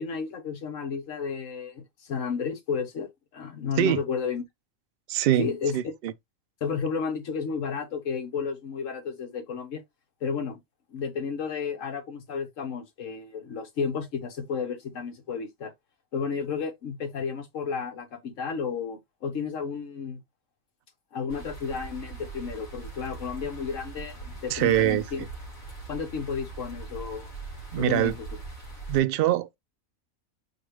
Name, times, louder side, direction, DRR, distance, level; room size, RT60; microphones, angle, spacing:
voice 1, 0.0-4.4 5.4-5.8 6.6-9.8 10.2-10.6 10.9-15.7 16.1-20.2 21.1-25.2 25.9-27.3 27.7-28.3, left 6 dB, 65° left, 1.4 m, -32 dB
voice 2, 5.1-5.5 5.7-6.1 24.5-25.3 27.7-28.1 28.9-29.6, right 11 dB, 70° right, 0.5 m, -24 dB
sound 1, 21.3-29.0, right 4 dB, 50° left, 2.3 m, -41 dB
4.6 x 2.3 x 4.6 m
omnidirectional pair, 1.5 m